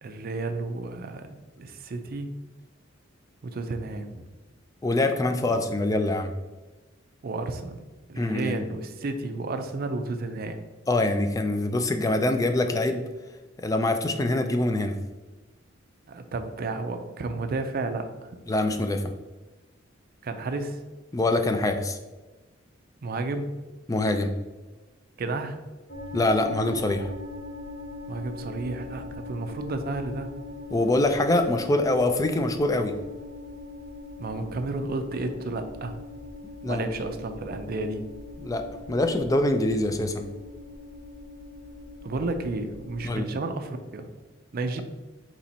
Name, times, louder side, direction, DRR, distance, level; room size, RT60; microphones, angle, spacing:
voice 1, 0.0-2.3 3.4-4.2 5.5-5.6 7.2-7.8 8.1-10.6 16.1-18.3 20.2-20.8 23.0-23.5 25.2-25.6 28.1-30.3 34.2-36.0 36.7-38.0 42.0-44.1 44.5-44.8, right 3 dB, 50° right, 7 dB, 0.4 m, -32 dB
voice 2, 4.8-6.3 8.2-8.6 10.9-13.0 13.6-15.0 18.5-19.0 21.1-22.0 23.9-24.3 26.1-27.1 30.7-32.9 36.6-36.9 38.4-38.6 38.9-40.3 43.0-43.3, left 2 dB, 15° left, 7 dB, 0.3 m, -24 dB
sound 1, 25.9-43.2, left 2 dB, 45° left, 1.2 m, -41 dB
4.2 x 3.0 x 4.1 m, 1.2 s
head